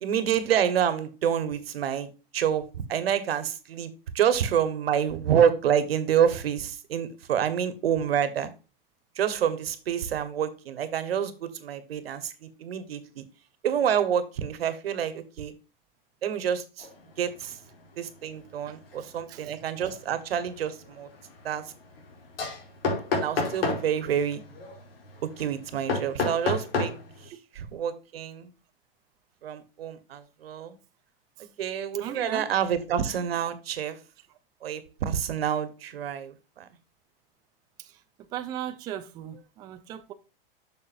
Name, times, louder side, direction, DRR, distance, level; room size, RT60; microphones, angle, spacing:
voice 1, 0.0-8.5 9.1-13.2 13.6-15.5 16.2-16.9 17.2-17.6 18.0-21.1 21.4-21.6 23.1-24.4 25.2-26.9 27.2-28.5 29.4-30.8 31.6-34.0 34.6-36.7, right 8 dB, 85° right, 1.4 m, -28 dB
sound 1, 16.8-17.1 17.4-17.8 18.2-27.3, left 3 dB, 80° left, 2.7 m, -32 dB
voice 2, 18.7-19.5 31.4-31.5 32.0-32.5 37.8-40.1, right 11 dB, 15° right, 0.3 m, -38 dB
7.2 x 6.4 x 2.6 m
supercardioid pair, 150°, 29 cm